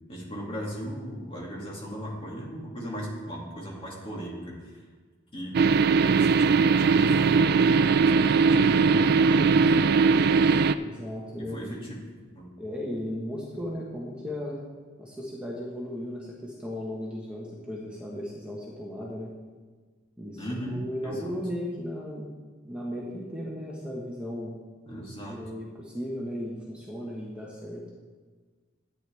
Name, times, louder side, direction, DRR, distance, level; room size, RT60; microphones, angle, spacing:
voice 1, 0.1-4.9 5.3-10.0 11.3-12.0 12.3-12.6 20.4-21.4 24.9-25.4, equal, 30° left, -3 dB, 2.4 m, -37 dB
sound 1, 5.5-10.7, right 5 dB, 55° right, 0.3 m, -20 dB
voice 2, 10.8-11.8 12.6-14.6 15.0-19.3 20.2-22.3 22.6-24.6 25.3-27.8, equal, 5° right, -5 dB, 1.2 m, -36 dB
12.5 x 9.3 x 3.5 m, 1.4 s
head